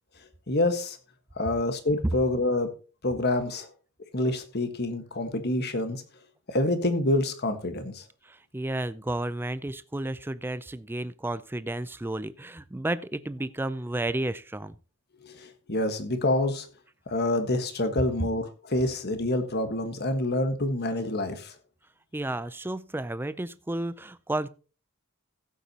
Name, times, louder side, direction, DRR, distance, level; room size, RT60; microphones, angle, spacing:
voice 1, 0.5-1.0 1.4-2.7 3.0-3.7 4.1-6.0 6.5-8.0 15.3-16.7 17.1-21.5, left 1 dB, 50° left, 8 dB, 1.5 m, -27 dB
voice 2, 8.2-14.7 22.1-24.5, right 1 dB, 10° right, 15 dB, 0.4 m, -32 dB
15.5 x 8.3 x 2.9 m, 0.35 s
head